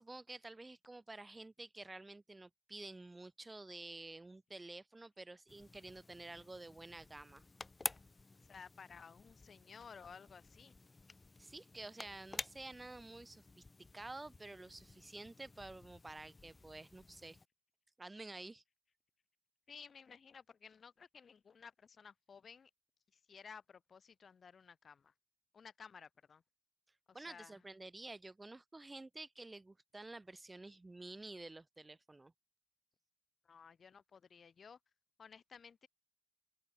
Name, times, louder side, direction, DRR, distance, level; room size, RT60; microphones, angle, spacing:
voice 1, 0.0-7.4 11.4-13.6 13.9-17.4 18.0-18.6 27.1-32.3, right 2 dB, 15° right, 1.7 m, -51 dB
sound 1, 5.5-17.5, left 3 dB, 20° left, 0.9 m, -51 dB
voice 2, 8.3-10.7 19.7-22.7 23.1-25.1 25.5-26.4 27.1-27.6 33.4-34.8 35.2-35.9, left 6 dB, 45° left, 3.5 m, -56 dB
open air
cardioid pair, 90°, 0 cm